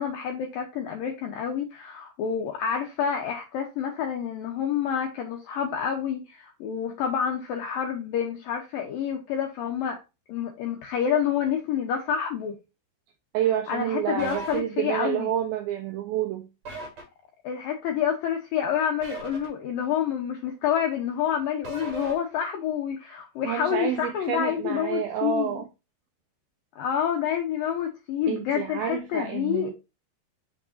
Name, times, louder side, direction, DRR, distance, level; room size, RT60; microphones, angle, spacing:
voice 1, 0.0-10.0 10.3-12.6 13.7-15.3 17.4-25.6 26.8-29.7, left 8 dB, 80° left, 2.0 m, -28 dB
voice 2, 13.3-16.5 23.4-25.7 28.3-29.7, right 10 dB, 85° right, 2.1 m, -29 dB
sound 1, 14.2-14.6 16.6-17.0 19.0-19.5 21.6-22.1, right 3 dB, 45° right, 3.0 m, -37 dB
6.6 x 6.1 x 2.6 m
omnidirectional pair, 5.2 m